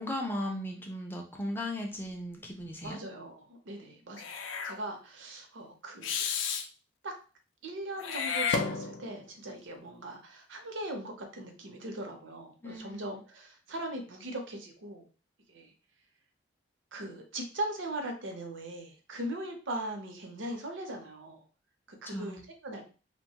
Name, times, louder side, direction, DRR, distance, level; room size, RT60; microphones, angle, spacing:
voice 1, 0.0-3.0 12.6-13.2 22.1-22.4, left 1 dB, 10° left, 1 dB, 0.4 m, -37 dB
voice 2, 2.8-6.2 7.0-7.1 7.6-15.1 15.5-15.7 16.9-21.4 21.9-22.8, right 1 dB, 85° right, 4 dB, 0.7 m, -40 dB
Meow / Hiss, 4.2-4.8 6.0-6.7 8.0-9.2, left 5 dB, 85° left, 0.4 m, -32 dB
3.0 x 2.2 x 2.8 m, 0.36 s
head